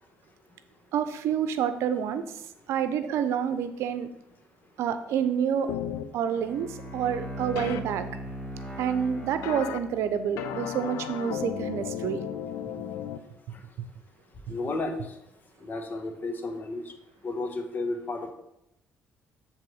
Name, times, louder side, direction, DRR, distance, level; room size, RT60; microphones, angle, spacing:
voice 1, 0.9-2.3 2.7-4.1 4.8-5.7 6.1-8.1 8.8-12.2, right 8 dB, 75° right, 11 dB, 0.7 m, -28 dB
sound 1, 5.7-6.0 7.6-7.8 9.4-9.8 10.4-13.2, left 10 dB, 90° left, 0.5 m, -34 dB
Bowed string instrument, 6.3-10.3, equal, 20° left, 2.8 m, -39 dB
voice 2, 14.5-15.0 15.6-16.8 17.2-18.3, left 2 dB, 40° left, 5 dB, 1.3 m, -32 dB
7.5 x 3.6 x 6.3 m, 0.82 s
supercardioid pair, 75°, 5 cm